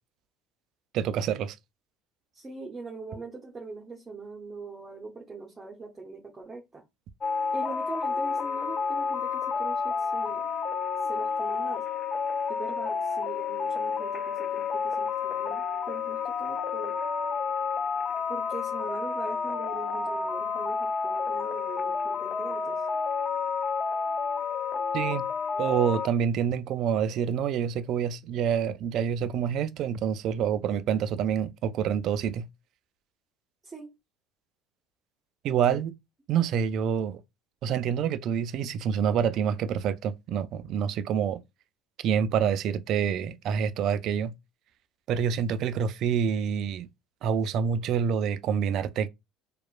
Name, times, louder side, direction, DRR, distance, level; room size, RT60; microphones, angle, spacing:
voice 1, 0.9-1.6 24.9-25.3 25.6-32.5 35.4-35.9 36.3-37.2 37.6-41.4 42.0-44.3 45.1-46.9 47.2-49.1, right 8 dB, 55° right, 0.3 m, -27 dB
voice 2, 2.3-6.8 7.5-10.5 11.0-11.9 12.5-17.0 18.3-22.9 33.6-33.9 35.4-35.8, right 3 dB, 20° right, 0.7 m, -42 dB
sound 1, 7.2-26.1, left 5 dB, 35° left, 0.4 m, -30 dB
2.8 x 2.1 x 2.4 m
hypercardioid pair, 75°, 0 cm